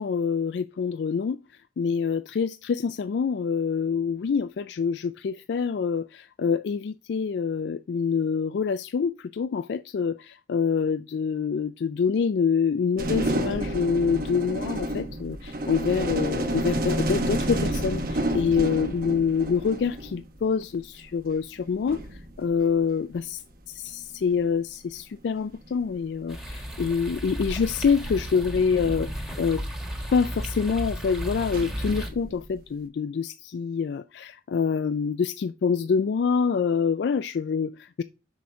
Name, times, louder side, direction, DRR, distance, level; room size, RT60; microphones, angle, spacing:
voice 1, 0.0-1.4 1.8-29.6 30.1-38.0, left 6 dB, 65° left, 0.3 m, -26 dB
sound 1, 13.0-20.4 21.6-21.7 21.9-23.2 24.3-24.6 25.7-25.8 26.4-26.6 27.5-29.9 31.4-32.6, right 1 dB, 50° right, 1.1 m, -30 dB
sound 2, 26.3-32.1, equal, 5° right, 1.4 m, -34 dB
7.0 x 6.2 x 3.7 m
head